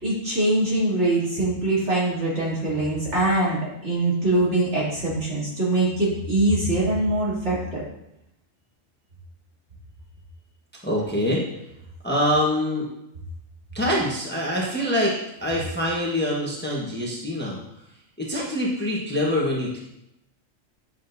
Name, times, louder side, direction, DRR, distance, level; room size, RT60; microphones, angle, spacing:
voice 1, 0.0-7.8, right 2 dB, 60° right, -8 dB, 3.3 m, -23 dB
voice 2, 10.8-11.4 12.0-12.9 13.7-15.1 15.4-17.6 18.2-19.8, left 1 dB, 10° left, -4 dB, 1.2 m, -24 dB
9.4 x 6.2 x 2.7 m, 0.84 s
omnidirectional pair, 1.3 m